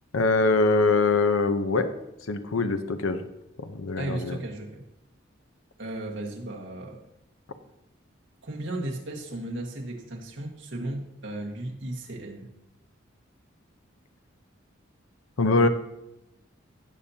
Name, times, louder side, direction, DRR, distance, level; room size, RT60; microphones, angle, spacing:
voice 1, 0.1-1.9 2.3-3.2 3.6-4.4 15.4-15.7, left 3 dB, 90° left, 9 dB, 0.7 m, -23 dB
voice 2, 4.0-4.8 5.8-7.0 8.4-12.5, right 1 dB, 65° right, -1 dB, 1.6 m, -35 dB
16.5 x 7.0 x 2.8 m, 0.86 s
head